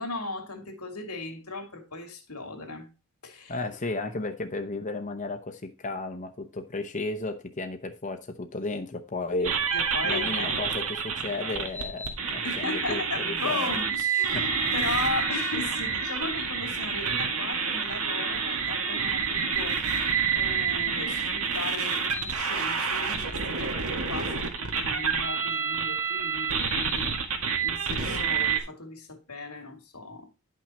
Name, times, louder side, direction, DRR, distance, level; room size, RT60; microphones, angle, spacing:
voice 1, 0.0-2.9 3.2-3.6 9.7-10.6 11.4-11.6 12.4-30.3, left 3 dB, 90° left, 2.5 m, -37 dB
voice 2, 3.5-9.8 10.0-13.7 14.3-14.4, left 2 dB, 35° left, 0.8 m, -34 dB
sound 1, 9.4-28.6, right 6 dB, 75° right, 2.0 m, -28 dB
11.0 x 6.0 x 4.2 m
head